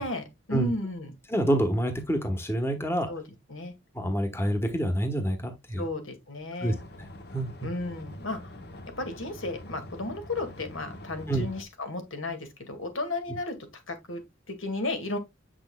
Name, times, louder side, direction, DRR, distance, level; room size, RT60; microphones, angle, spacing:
voice 1, 0.0-1.2 3.1-3.2 3.5-3.7 5.8-6.8 7.6-8.4 9.0-14.2 14.5-15.2, left 2 dB, 85° left, 2.0 m, -34 dB
voice 2, 1.3-3.1 3.9-5.8 6.6-6.7 7.3-7.7 11.3-11.5, right 1 dB, 15° left, 1.1 m, -27 dB
sound 1, 6.6-11.6, left 1 dB, 55° left, 1.1 m, -45 dB
7.2 x 6.2 x 2.2 m
head